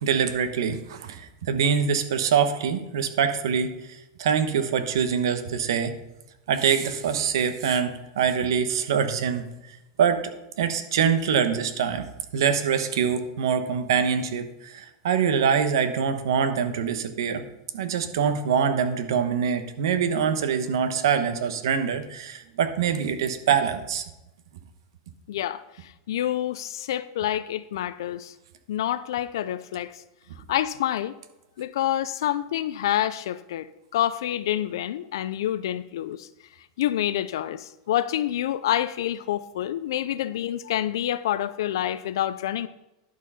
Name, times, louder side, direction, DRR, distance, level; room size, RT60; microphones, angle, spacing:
voice 1, 0.0-3.8 4.2-6.0 6.5-9.7 10.0-17.5 17.7-24.0, right 7 dB, 85° right, 8 dB, 1.1 m, -24 dB
voice 2, 25.3-28.3 28.7-30.0 30.5-31.2 31.6-36.3 36.8-42.7, left 12 dB, 85° left, 15 dB, 0.4 m, -27 dB
11.5 x 4.6 x 5.6 m, 0.94 s
supercardioid pair, 145°, 2 cm